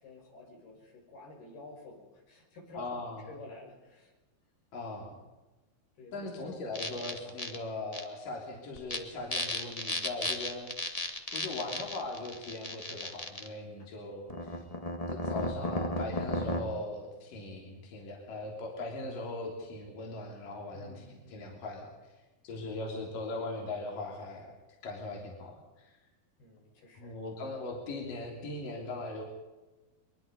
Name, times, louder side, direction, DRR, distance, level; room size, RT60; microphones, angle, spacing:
voice 1, 0.0-4.1 6.0-7.4 11.5-11.9 20.7-21.5 22.5-23.0 26.4-27.2, left 2 dB, 80° left, 1 dB, 7.5 m, -51 dB
voice 2, 2.7-3.2 4.7-5.2 6.1-10.7 11.3-14.6 15.1-21.9 22.4-24.5 24.8-25.9 26.9-29.2, left 2 dB, 60° left, -1 dB, 4.9 m, -39 dB
sound 1, 6.7-7.5 7.9-8.0 8.7-9.0 9.3-13.5 14.3-16.6, left 1 dB, 30° left, 0.6 m, -34 dB
23.5 x 22.5 x 5.4 m, 1.2 s
omnidirectional pair, 4.4 m